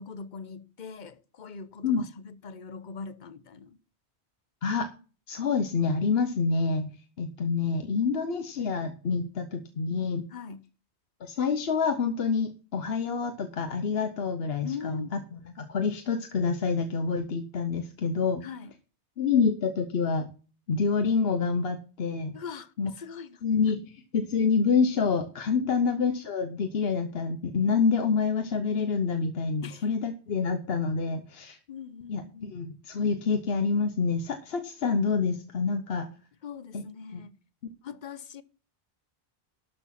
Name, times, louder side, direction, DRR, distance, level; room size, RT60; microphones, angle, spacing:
voice 1, 0.0-3.8 10.3-10.7 14.6-15.2 18.4-18.7 22.3-23.4 25.6-25.8 29.6-29.9 31.7-32.5 36.4-37.4 37.8-38.4, left 6 dB, 50° left, 0.9 m, -41 dB
voice 2, 5.3-10.2 11.2-15.2 15.6-18.4 19.2-20.3 20.7-22.4 22.8-22.9 23.4-31.6 32.1-36.1 36.7-36.8 37.1-37.2, left 5 dB, 65° left, 1.1 m, -27 dB
12.5 x 6.1 x 5.8 m
omnidirectional pair, 1.1 m